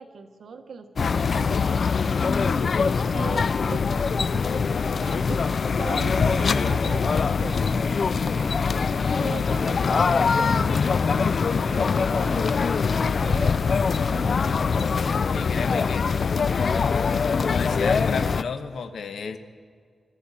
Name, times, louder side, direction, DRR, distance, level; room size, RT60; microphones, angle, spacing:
voice 1, 0.0-2.7 3.1-8.6 9.1-11.3 11.7-14.3, right 5 dB, 75° right, 6 dB, 1.3 m, -39 dB
sound 1, 1.0-18.4, left 5 dB, 55° left, 0.4 m, -23 dB
voice 2, 15.3-16.1 16.5-17.1 17.4-19.4, left 5 dB, 85° left, 8 dB, 1.0 m, -32 dB
25.0 x 13.0 x 4.2 m, 2.1 s
wide cardioid pair, 105°, 0 cm